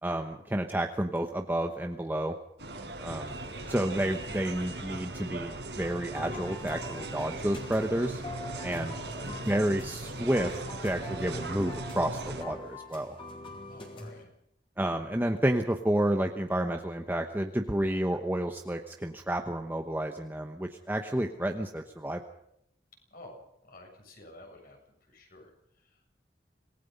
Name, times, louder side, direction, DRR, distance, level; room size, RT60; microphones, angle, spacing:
voice 1, 0.0-2.3 3.0-3.4 3.7-8.2 8.6-8.9 9.5-13.1 14.8-22.2, right 1 dB, 10° right, 4 dB, 1.0 m, -30 dB
sound 1, 2.6-12.4, right 2 dB, 85° right, 5.1 m, -39 dB
voice 2, 3.4-3.7 9.2-9.7 13.6-14.3 23.1-26.2, left 1 dB, 55° left, 2 dB, 7.4 m, -52 dB
sound 2, 6.1-14.2, left 1 dB, 30° left, 4.7 m, -44 dB
26.5 x 19.0 x 5.4 m, 0.75 s
head